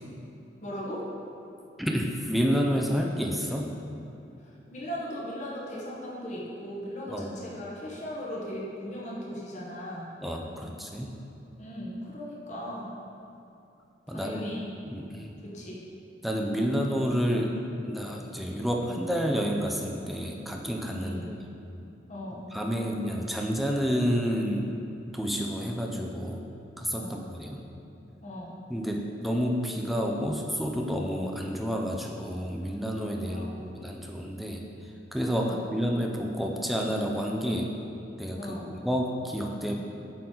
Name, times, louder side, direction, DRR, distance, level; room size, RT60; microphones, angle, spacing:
voice 1, 0.6-1.0 4.4-10.1 11.6-12.9 14.1-14.6 15.4-15.8 21.0-21.3 22.1-22.5 26.9-27.2 28.2-28.6 33.3-33.5 35.4-35.6 38.4-38.7, equal, 40° left, -5 dB, 1.1 m, -38 dB
voice 2, 1.8-3.7 7.1-7.4 10.2-11.1 14.1-14.5 14.9-15.3 16.2-17.6 17.9-21.4 22.5-24.7 25.1-26.4 26.8-27.6 28.7-37.7 38.2-39.7, equal, ahead, 1 dB, 0.5 m, -29 dB
8.7 x 3.8 x 3.8 m, 2.8 s
head